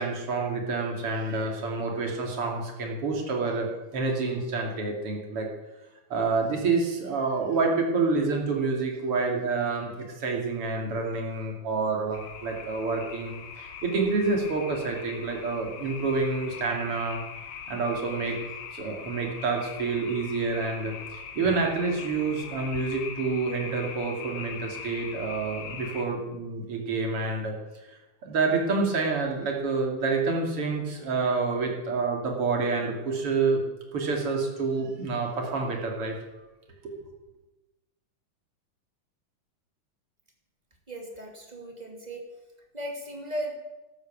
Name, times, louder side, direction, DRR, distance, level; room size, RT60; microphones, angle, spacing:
voice 1, 0.0-5.5 6.1-9.9 10.2-17.2 17.7-18.4 18.7-27.5 27.9-33.6 33.9-36.2 36.8-36.9, right 4 dB, 45° right, 1 dB, 3.5 m, -28 dB
sound 1, 12.1-26.1, left 7 dB, 80° left, 3.1 m, -41 dB
voice 2, 40.9-42.2 42.7-43.5, right 1 dB, 15° right, 1 dB, 2.6 m, -36 dB
12.5 x 12.5 x 7.5 m, 1.1 s
omnidirectional pair, 3.8 m